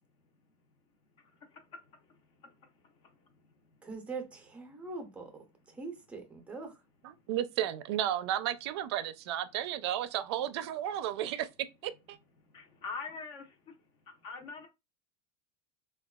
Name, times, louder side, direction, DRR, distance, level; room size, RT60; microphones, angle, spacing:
voice 1, 3.8-5.3 5.7-6.7, right 4 dB, 10° right, 0.6 m, -42 dB
voice 2, 7.0-11.5 11.8-12.2, right 11 dB, 70° right, 0.4 m, -33 dB
voice 3, 12.5-13.4 14.2-14.7, left 4 dB, 35° left, 0.6 m, -41 dB
3.9 x 2.3 x 2.2 m
supercardioid pair, 160°, 14 cm